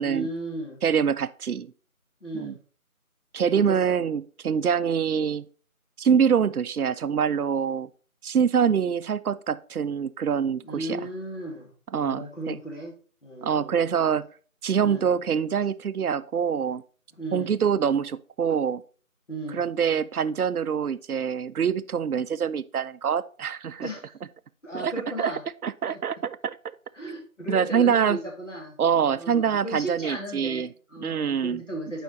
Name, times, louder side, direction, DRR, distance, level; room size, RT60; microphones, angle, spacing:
voice 1, 0.0-0.8 2.2-2.6 3.5-3.9 10.6-11.7 12.0-12.9 13.2-13.8 14.8-15.1 17.2-17.6 19.3-19.6 23.8-24.1 24.6-25.4 25.9-26.0 26.9-28.8 29.1-32.0, right 1 dB, 55° left, 0 dB, 2.1 m, -35 dB
voice 2, 0.8-1.7 2.3-2.5 3.3-5.5 6.0-7.9 8.2-11.0 11.9-12.6 13.4-14.3 14.6-16.8 17.3-18.8 19.5-23.9 24.7-24.9 25.2-25.3 25.6-26.6 27.5-28.2 28.8-30.7 31.0-31.6, right 7 dB, 85° right, 16 dB, 0.5 m, -25 dB
7.5 x 5.0 x 3.2 m, 0.41 s
figure-of-eight pair, 180°, 43 cm